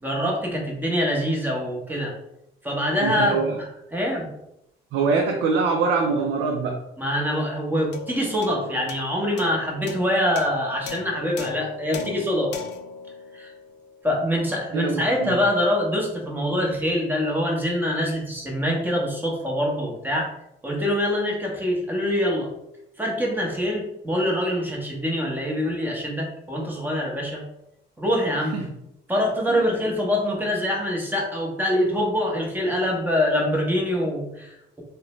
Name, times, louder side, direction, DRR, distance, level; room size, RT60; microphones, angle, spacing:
voice 1, 0.0-2.1 2.6-3.6 3.9-4.3 7.0-12.5 13.3-13.5 14.0-20.3 20.6-22.5 23.0-27.4 28.0-28.6 29.1-34.8, equal, 10° right, -1 dB, 0.8 m, -24 dB
voice 2, 3.0-3.6 4.9-6.8 14.7-15.4 28.5-28.7 29.5-29.7, right 4 dB, 80° right, 1 dB, 0.4 m, -24 dB
sound 1, 7.9-14.5, left 5 dB, 60° left, 0.4 m, -39 dB
2.5 x 2.1 x 3.0 m, 0.82 s
cardioid pair, 90°, 20 cm